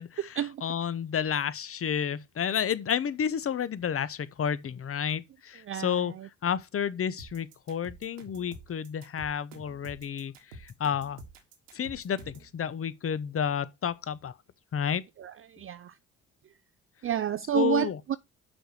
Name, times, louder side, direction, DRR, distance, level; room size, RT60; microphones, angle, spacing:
voice 1, 0.0-6.1 6.4-11.2 11.7-14.3 14.7-15.0 17.5-18.0, left 8 dB, 40° left, 0.9 m, -31 dB
voice 2, 5.7-6.0 15.2-15.9 17.0-18.2, right 10 dB, 35° right, 0.5 m, -30 dB
sound 1, 7.2-12.5, right 2 dB, 90° right, 1.5 m, -48 dB
6.2 x 5.1 x 6.3 m
hypercardioid pair, 50°, 36 cm